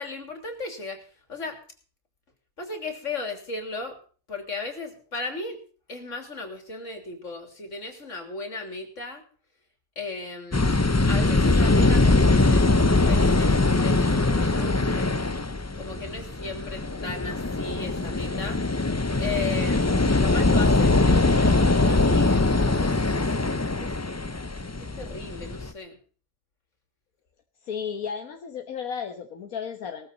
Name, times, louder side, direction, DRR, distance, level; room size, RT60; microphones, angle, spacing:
voice 1, 0.0-1.6 2.6-4.0 4.3-5.6 5.9-9.2 10.0-10.8 11.1-15.1 15.7-18.6 19.2-23.3 23.8-23.9 24.8-26.0, left 3 dB, 60° left, 4 dB, 3.6 m, -36 dB
sound 1, 10.5-25.7, left 2 dB, 25° left, 0.3 m, -22 dB
voice 2, 27.6-30.1, left 7 dB, 80° left, 4 dB, 1.7 m, -33 dB
18.5 x 14.0 x 4.0 m, 0.41 s
omnidirectional pair, 1.5 m